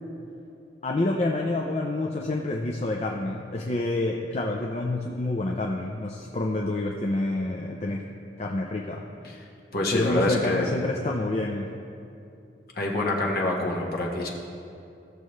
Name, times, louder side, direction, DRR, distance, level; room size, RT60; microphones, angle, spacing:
voice 1, 0.8-8.0 8.4-9.0 9.9-11.7, left 2 dB, 35° left, 0 dB, 0.5 m, -28 dB
voice 2, 9.7-10.8 12.7-14.3, left 2 dB, 55° left, -2 dB, 1.4 m, -26 dB
15.0 x 6.7 x 3.2 m, 2.6 s
head